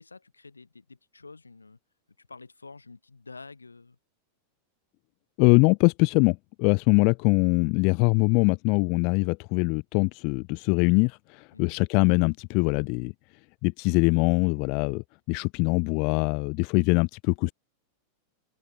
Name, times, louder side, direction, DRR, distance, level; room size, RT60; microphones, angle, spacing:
voice 1, 0.0-1.8 2.2-4.0 11.5-11.8, left 4 dB, 80° left, 6.5 m, -48 dB
voice 2, 5.4-13.1 13.6-17.5, left 34 dB, 45° left, 0.4 m, -23 dB
figure-of-eight pair, 90°, 0 cm